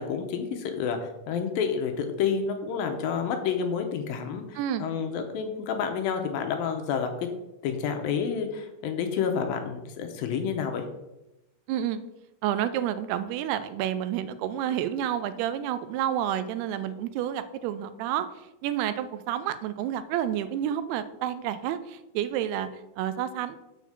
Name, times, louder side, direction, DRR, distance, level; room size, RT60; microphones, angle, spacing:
voice 1, 0.0-7.1 7.6-10.9, left 6 dB, 75° left, 5 dB, 2.4 m, -29 dB
voice 2, 4.6-4.9 11.7-12.0 12.4-18.3 18.6-23.6, right 10 dB, 85° right, 12 dB, 2.6 m, -29 dB
7.2 x 4.9 x 6.9 m, 0.93 s
omnidirectional pair, 4.5 m